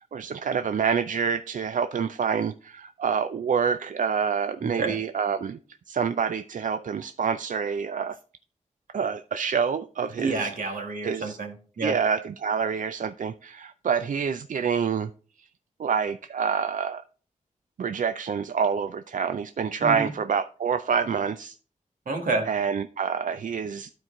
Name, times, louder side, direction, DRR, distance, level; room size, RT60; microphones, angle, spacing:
voice 1, 0.1-5.6 5.9-8.2 8.9-10.5 11.0-11.4 11.8-15.1 15.4-15.5 15.8-17.0 17.8-21.6 22.5-23.9, right 6 dB, 70° right, 10 dB, 0.4 m, -27 dB
voice 2, 4.6-5.0 10.2-12.0 19.8-20.1 22.1-22.5, right 3 dB, 90° right, 3 dB, 1.7 m, -29 dB
12.5 x 4.5 x 3.7 m, 0.40 s
wide cardioid pair, 110°, 14 cm